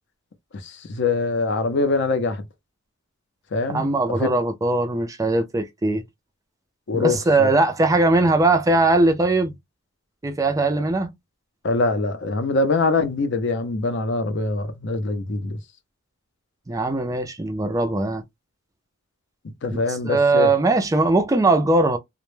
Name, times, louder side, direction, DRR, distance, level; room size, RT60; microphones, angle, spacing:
voice 1, 0.6-2.4 3.5-4.4 6.9-7.5 11.6-15.6 19.6-20.5, left 3 dB, 55° left, 0.5 m, -23 dB
voice 2, 3.7-6.0 6.9-9.5 10.2-11.1 16.7-18.2 19.7-22.0, right 2 dB, 15° right, 0.3 m, -20 dB
2.1 x 2.0 x 3.1 m
head